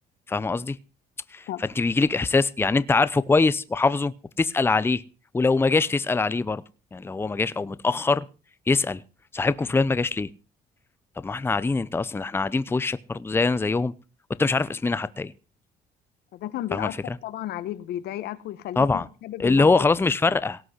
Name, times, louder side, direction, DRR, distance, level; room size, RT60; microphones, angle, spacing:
voice 1, 0.3-0.8 1.3-5.0 5.3-6.6 6.9-8.3 8.7-9.0 9.3-10.3 11.2-13.9 14.4-15.3 16.7-17.2 18.8-19.1 19.4-20.6, left 3 dB, 15° left, 0.7 m, -23 dB
voice 2, 16.3-17.0 17.2-19.9, left 13 dB, 75° left, 1.2 m, -33 dB
18.0 x 6.2 x 8.0 m
cardioid pair, 110°, 17 cm